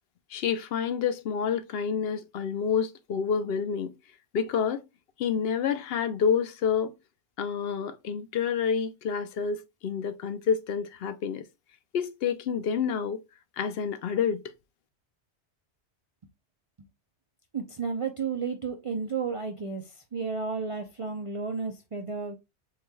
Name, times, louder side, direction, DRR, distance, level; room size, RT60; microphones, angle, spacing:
voice 1, 0.3-3.9 4.3-4.8 5.2-6.9 7.4-11.4 11.9-13.2 13.6-14.4, left 7 dB, 65° left, 0.8 m, -28 dB
voice 2, 17.5-19.8 20.1-22.3, right 5 dB, 40° right, 0.5 m, -32 dB
6.7 x 3.2 x 2.2 m
omnidirectional pair, 1.2 m